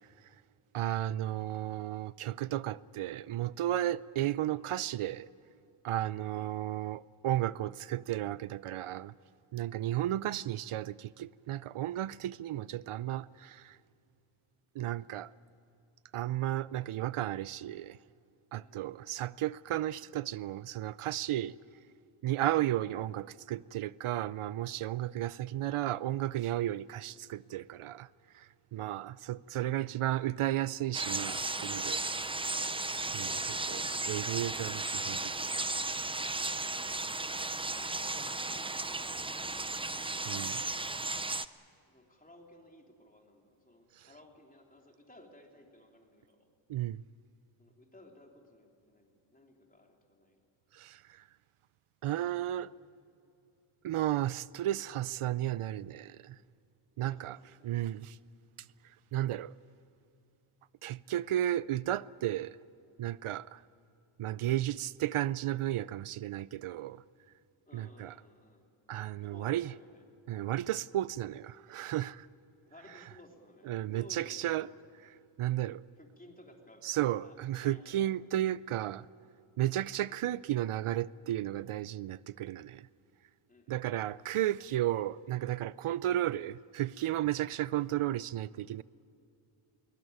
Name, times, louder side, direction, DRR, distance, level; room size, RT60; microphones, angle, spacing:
voice 1, 0.7-5.3 5.8-9.1 9.5-13.8 14.7-15.3 16.1-18.0 18.5-21.6 22.2-28.1 28.3-32.0 33.1-33.4 33.7-35.7 40.2-40.6 44.0-44.1 46.7-47.0 50.7-51.2 52.0-52.7 53.8-56.4 57.0-57.4 57.6-58.2 59.1-59.5 60.8-62.6 63.0-63.6 64.2-67.0 67.7-68.2 68.9-69.7 70.3-72.3 73.7-74.7 75.4-75.8 76.8-79.1 79.6-82.9 83.7-88.8, right 13 dB, 80° right, 0.6 m, -33 dB
voice 2, 18.6-19.1 28.7-29.0 33.2-33.8 36.7-40.0 41.9-46.5 47.6-50.4 57.0-57.7 67.6-68.6 69.2-70.0 72.7-74.7 76.0-78.1 83.5-84.2 87.4-87.6, left 1 dB, 15° left, 3.2 m, -58 dB
sound 1, 30.9-41.5, right 2 dB, 10° right, 0.5 m, -35 dB
21.5 x 20.0 x 9.3 m
wide cardioid pair, 130°, 49 cm